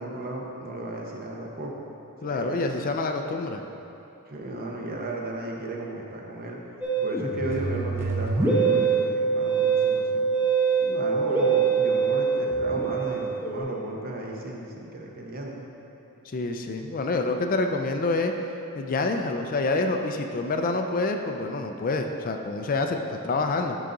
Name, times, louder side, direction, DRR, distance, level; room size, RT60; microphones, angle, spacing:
voice 1, 0.0-1.7 2.2-2.7 4.3-6.6 7.0-10.3 10.8-15.6, right 1 dB, 40° right, -1 dB, 0.8 m, -35 dB
voice 2, 2.2-3.6 16.3-18.3 18.8-23.8, left 3 dB, 40° left, 5 dB, 0.4 m, -27 dB
Musical instrument, 6.8-13.6, right 5 dB, 10° right, 1.0 m, -24 dB
11.0 x 4.0 x 3.8 m, 2.9 s
head